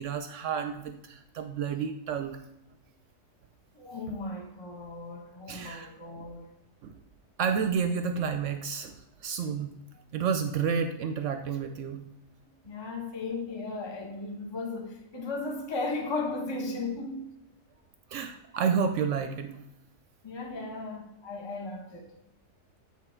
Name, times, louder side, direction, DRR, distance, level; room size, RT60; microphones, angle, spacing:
voice 1, 0.0-2.4 5.5-5.9 6.8-7.0 7.4-8.9 9.2-9.7 10.1-12.0 18.1-19.6, right 6 dB, 70° right, 0.9 m, -30 dB
voice 2, 3.7-6.4 12.6-17.3 20.2-22.1, left 3 dB, 25° left, 0.9 m, -36 dB
8.7 x 3.5 x 4.3 m
omnidirectional pair, 1.4 m